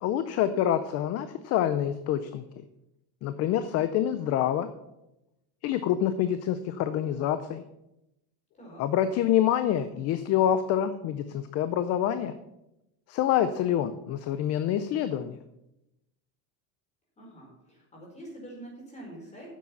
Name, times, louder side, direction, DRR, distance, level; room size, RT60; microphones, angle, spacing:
voice 1, 0.0-2.4 3.2-4.7 5.6-7.6 8.8-12.3 13.1-15.4, left 10 dB, 35° left, 11 dB, 0.4 m, -26 dB
voice 2, 8.5-8.8 17.2-19.5, right 1 dB, 15° left, -3 dB, 4.7 m, -45 dB
9.5 x 7.4 x 7.0 m, 0.89 s
cardioid pair, 160°, 46 cm